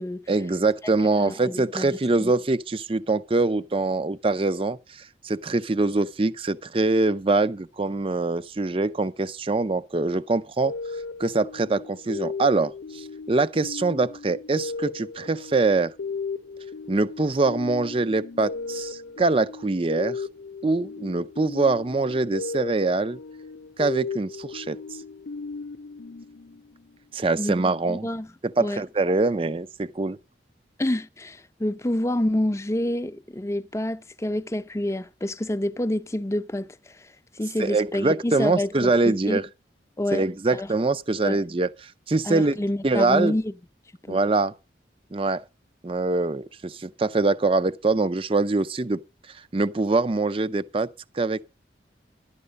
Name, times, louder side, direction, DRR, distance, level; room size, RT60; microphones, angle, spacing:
voice 1, 0.3-10.7 11.2-15.9 16.9-20.3 20.6-23.2 23.8-24.8 27.1-28.1 28.4-30.2 37.6-39.5 40.1-42.5 42.8-43.4 44.1-44.5 45.1-45.4 45.8-49.0 49.3-50.9 51.1-51.4, right 3 dB, 30° right, 0.5 m, -24 dB
voice 2, 1.2-2.3 27.4-27.5 27.9-28.3 28.6-28.8 30.8-39.4 40.0-40.3 40.5-40.7 41.2-41.4 42.2-43.5 44.0-44.2, left 1 dB, 15° left, 0.5 m, -28 dB
sound 1, 10.6-27.0, left 4 dB, 80° left, 0.6 m, -36 dB
12.0 x 9.7 x 5.2 m
head